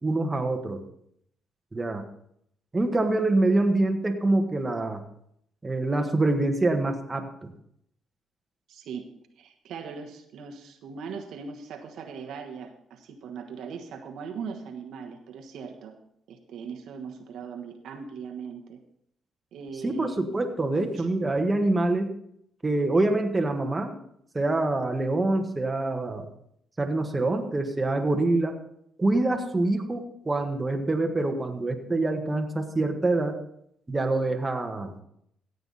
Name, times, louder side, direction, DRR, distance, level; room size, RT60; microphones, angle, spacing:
voice 1, 0.0-0.8 1.7-2.0 2.7-5.0 5.6-7.5 19.8-22.1 22.6-23.9 24.3-26.3 26.8-28.6 29.0-33.4 33.9-35.0, right 2 dB, 20° right, 4 dB, 1.5 m, -25 dB
voice 2, 8.7-9.1 9.4-16.0 16.3-18.8 19.5-20.4 20.6-21.1, right 6 dB, 75° right, 3 dB, 1.3 m, -39 dB
15.0 x 8.2 x 4.1 m, 0.71 s
cardioid pair, 90°, 0 cm